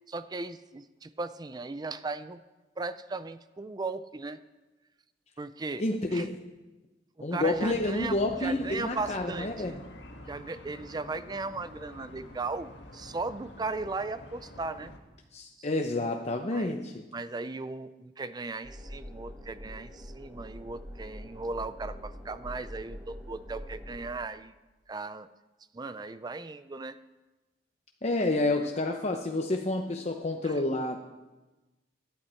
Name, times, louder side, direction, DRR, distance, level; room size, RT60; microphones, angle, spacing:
voice 1, 0.1-2.4 2.8-4.4 5.4-5.8 6.1-6.2 7.2-8.2 8.4-9.8 10.3-14.9 15.6-15.7 16.5-16.7 17.1-24.5 24.9-25.3 25.7-27.0 30.4-30.5, right 3 dB, 25° right, 13 dB, 0.4 m, -37 dB
voice 2, 5.8-6.4 7.2-9.8 15.3-17.0 28.0-31.0, left 2 dB, 40° left, 3 dB, 0.9 m, -29 dB
sound 1, 7.4-15.0, left 1 dB, 80° left, 1.8 m, -48 dB
sound 2, 18.6-24.1, equal, 5° right, 4.7 m, -44 dB
18.0 x 11.5 x 4.5 m, 1.1 s
head